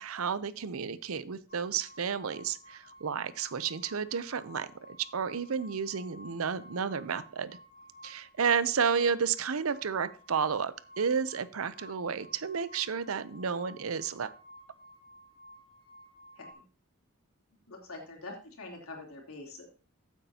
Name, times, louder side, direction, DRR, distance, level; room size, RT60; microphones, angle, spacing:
voice 1, 0.0-7.6 8.0-14.3, right 6 dB, 80° right, 15 dB, 0.7 m, -31 dB
sound 1, 1.5-16.5, equal, 45° left, 4.6 m, -54 dB
voice 2, 17.7-19.7, left 2 dB, 90° left, 0 dB, 3.3 m, -45 dB
14.5 x 8.2 x 2.9 m, 0.38 s
head